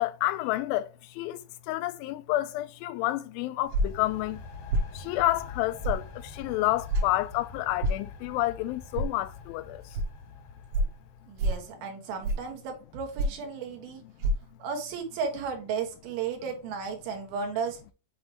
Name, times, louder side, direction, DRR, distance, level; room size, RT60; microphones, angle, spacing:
voice 1, 0.0-4.4 4.9-9.8, left 16 dB, 85° left, 2.4 m, -29 dB
sound 1, 3.6-11.4, left 5 dB, 65° left, 2.0 m, -45 dB
sound 2, 3.7-4.0 4.7-4.9 5.8-6.0 6.9-7.1 7.8-8.0 8.9-9.1 9.9-10.1 10.7-10.9 11.4-11.6 12.2-12.5 13.2-13.5 14.2-14.3, right 1 dB, 70° right, 2.3 m, -26 dB
voice 2, 11.3-14.0 14.6-17.8, right 6 dB, 85° right, 3.3 m, -34 dB
7.7 x 4.1 x 3.1 m
omnidirectional pair, 4.2 m